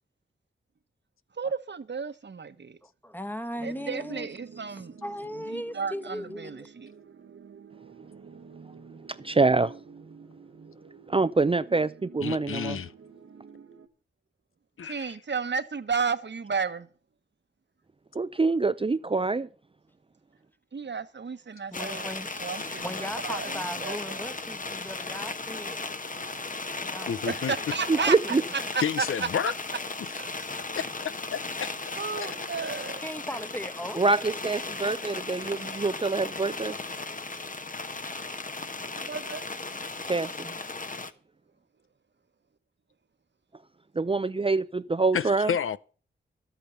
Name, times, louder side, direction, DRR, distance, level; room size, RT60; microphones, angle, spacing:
voice 1, 1.4-2.8 3.6-5.0 5.5-6.9 14.8-16.9 20.7-22.1 22.4-24.3 27.3-28.2 28.7-29.0 30.2-30.5 32.0-33.0 39.1-39.4, right 5 dB, 60° right, 1.3 m, -33 dB
voice 2, 2.8-4.3 4.7-6.7 21.7-25.9 26.8-27.3 27.9-28.5 33.0-34.0, equal, 10° left, 1.2 m, -38 dB
sound 1, 3.6-13.9, right 6 dB, 80° right, 1.2 m, -50 dB
voice 3, 9.1-9.7 11.1-12.8 18.1-19.5 27.9-28.4 34.0-36.8 40.0-40.6 44.0-45.5, right 3 dB, 25° right, 0.5 m, -25 dB
voice 4, 12.2-12.9 14.8-15.1 27.1-27.5 28.8-29.5 30.0-30.1 30.8-32.4 45.1-45.8, left 7 dB, 80° left, 0.6 m, -31 dB
sound 2, 21.7-41.1, left 3 dB, 40° left, 1.2 m, -36 dB
12.0 x 8.4 x 7.0 m
cardioid pair, 50°, 21 cm